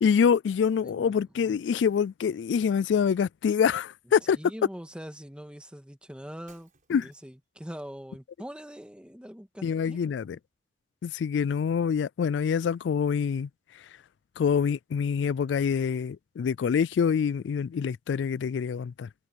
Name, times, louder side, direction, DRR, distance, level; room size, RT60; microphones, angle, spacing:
voice 1, 0.0-4.4 6.9-7.1 9.6-10.4 11.0-13.5 14.4-19.1, left 7 dB, 85° left, 0.3 m, -26 dB
voice 2, 0.8-1.2 4.3-10.2, equal, 5° right, 1.8 m, -43 dB
Shatter, 6.5-7.5, right 7 dB, 50° right, 6.9 m, -60 dB
head